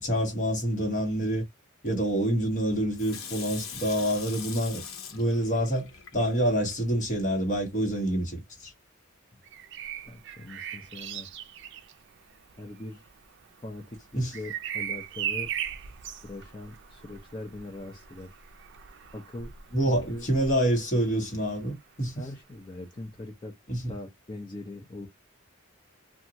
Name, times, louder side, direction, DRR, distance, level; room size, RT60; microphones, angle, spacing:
voice 1, 0.0-1.4 1.8-4.8 5.1-8.7 14.1-14.3 19.7-22.3 23.7-23.9, right 1 dB, 40° left, 1.2 m, -27 dB
Water tap faucet / Sink (filling or washing), 3.0-6.7 7.2-7.3, left 7 dB, 85° left, 0.7 m, -42 dB
Bird vocalization bird call bird song, 9.4-21.2 23.0-23.2, right 9 dB, 60° right, 0.4 m, -39 dB
voice 2, 10.1-11.3 12.6-13.0 13.6-15.5 16.2-18.4 19.1-19.5 19.9-20.3 22.2-23.5 23.9-25.1, left 2 dB, 20° left, 0.5 m, -41 dB
2.6 x 2.4 x 2.8 m
head